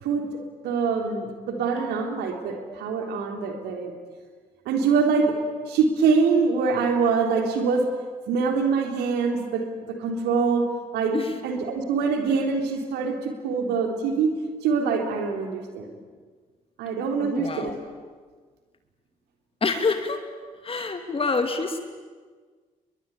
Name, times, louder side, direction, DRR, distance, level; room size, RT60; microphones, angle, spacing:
voice 1, 0.0-3.9 4.7-5.3 5.7-7.9 8.3-11.2 11.4-14.3 14.6-16.0 16.8-17.7, right 5 dB, 60° right, 3 dB, 3.6 m, -24 dB
voice 2, 17.2-17.8 19.6-20.3 20.6-21.8, left 4 dB, 30° left, 7 dB, 2.7 m, -26 dB
30.0 x 22.5 x 8.5 m, 1.5 s
figure-of-eight pair, 40°, 19 cm